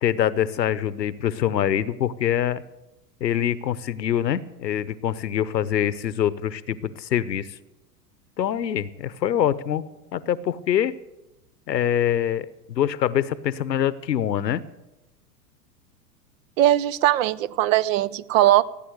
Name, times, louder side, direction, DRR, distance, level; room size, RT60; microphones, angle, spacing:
voice 1, 0.0-2.6 3.2-7.5 8.4-9.8 10.1-10.9 11.7-14.6, left 10 dB, 80° left, 17 dB, 0.9 m, -24 dB
voice 2, 16.6-18.7, right 14 dB, 50° right, 21 dB, 0.7 m, -20 dB
16.0 x 9.1 x 7.9 m, 0.98 s
hypercardioid pair, 100°, 50 cm